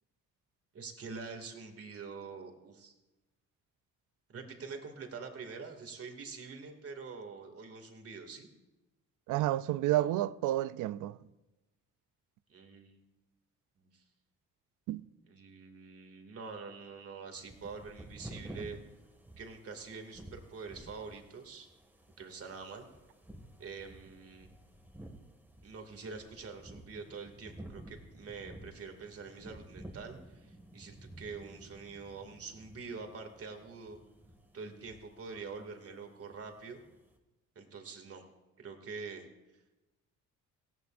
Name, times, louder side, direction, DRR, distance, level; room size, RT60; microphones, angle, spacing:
voice 1, 0.7-2.9 4.3-8.5 12.5-13.0 13.8-14.0 15.3-18.8 19.4-21.7 22.2-22.9 23.6-24.5 25.6-34.0 34.5-36.8 37.6-38.2 38.6-39.3, right 4 dB, 50° right, 2.4 m, -45 dB
voice 2, 9.3-11.2 14.9-15.0, right 14 dB, 85° right, 0.5 m, -30 dB
sound 1, 17.4-37.1, right 1 dB, 5° right, 1.9 m, -52 dB
19.0 x 16.0 x 2.6 m
cardioid pair, 90°, 30 cm